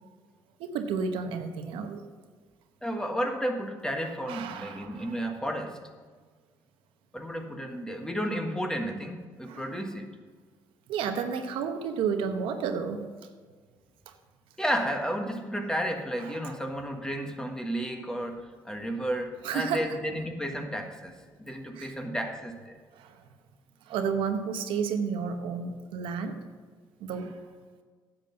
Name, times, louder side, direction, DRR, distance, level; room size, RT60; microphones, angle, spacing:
voice 1, 0.6-2.0 4.0-5.3 9.5-9.8 10.9-13.1 14.1-14.2 16.2-16.5 19.4-19.9 21.7-21.9 22.9-23.2 23.9-26.4 27.0-27.4, right 6 dB, 85° right, 6 dB, 1.0 m, -32 dB
voice 2, 2.8-5.8 7.1-10.1 14.6-21.1 21.4-22.7, equal, 10° left, 4 dB, 1.4 m, -32 dB
10.5 x 7.4 x 5.6 m, 1.5 s
cardioid pair, 95°, 9 cm